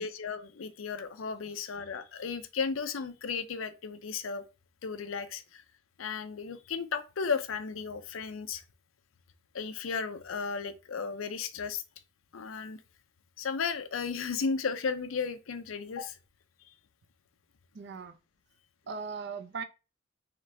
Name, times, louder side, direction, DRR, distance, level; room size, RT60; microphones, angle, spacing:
voice 1, 0.0-4.4 4.8-5.6 6.0-8.6 9.5-11.8 12.3-12.8 13.4-16.2, left 5 dB, 80° left, 0.5 m, -34 dB
voice 2, 17.7-18.2 18.9-19.6, right 5 dB, 55° right, 0.5 m, -38 dB
3.9 x 3.2 x 3.3 m
head